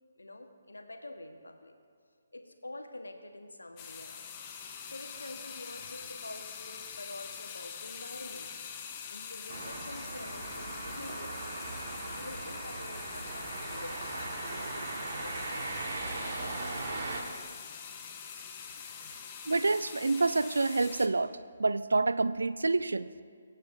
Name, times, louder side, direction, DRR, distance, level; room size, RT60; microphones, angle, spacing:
voice 1, 0.2-1.7 2.3-4.3 4.9-8.5 9.1-11.5 11.8-15.7 18.0-18.2, left 2 dB, 75° left, 6 dB, 1.0 m, -47 dB
sound 1, 3.8-21.1, left 7 dB, 25° left, 0.7 m, -44 dB
sound 2, 9.5-17.2, right 2 dB, 45° right, 1.4 m, -38 dB
voice 2, 19.5-21.3 21.6-23.2, right 3 dB, 70° right, 14 dB, 0.4 m, -27 dB
22.5 x 8.0 x 2.6 m, 2.1 s
figure-of-eight pair, 140°, 0 cm